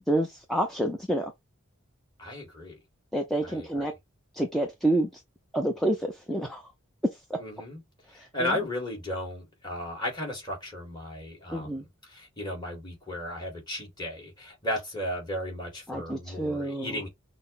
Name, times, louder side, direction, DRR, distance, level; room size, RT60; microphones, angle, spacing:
voice 1, 0.1-1.3 3.1-3.9 4.4-5.1 5.5-6.6 8.4-8.5 11.5-11.8 15.9-17.0, right 1 dB, ahead, 0.5 m, -28 dB
voice 2, 2.2-2.8 3.4-3.9 7.4-7.8 8.1-17.1, left 1 dB, 20° left, 2.1 m, -35 dB
6.1 x 2.1 x 3.9 m
head